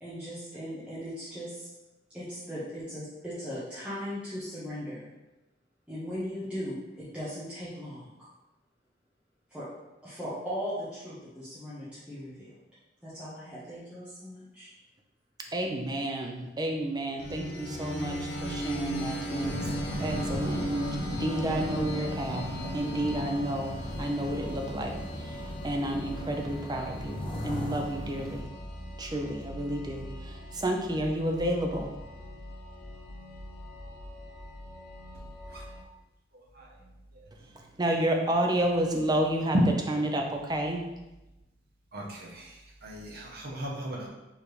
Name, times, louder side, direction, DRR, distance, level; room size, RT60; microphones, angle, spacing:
voice 1, 0.0-1.7 2.1-5.1 5.9-8.1 9.5-9.7 10.0-12.5 13.0-14.7, equal, 5° right, 1.1 m, -38 dB
voice 2, 15.5-19.6 20.0-28.5 29.0-31.9 37.8-39.6 39.9-40.8, right 1 dB, 20° right, 0.5 m, -31 dB
sound 1, 17.2-35.8, equal, 60° left, 0.8 m, -38 dB
sound 2, 19.4-28.4, left 1 dB, 30° left, 0.7 m, -38 dB
voice 3, 41.9-42.4 42.8-44.1, equal, 55° right, 0.9 m, -31 dB
4.8 x 3.4 x 3.2 m
head